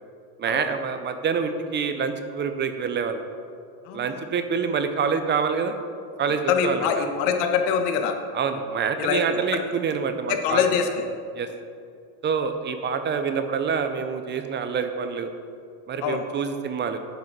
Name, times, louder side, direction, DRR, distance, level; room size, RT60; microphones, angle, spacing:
voice 1, 0.4-3.2 3.9-5.7 6.2-7.1 8.3-10.7 11.4-11.5 12.2-15.3 15.9-17.0, right 6 dB, 25° right, 8 dB, 0.5 m, -26 dB
voice 2, 3.9-4.2 6.5-8.2 9.0-9.2 10.3-11.1 16.0-16.2, left 7 dB, 70° left, 5 dB, 1.2 m, -24 dB
9.4 x 5.3 x 5.9 m, 2.3 s
cardioid pair, 140°, 46 cm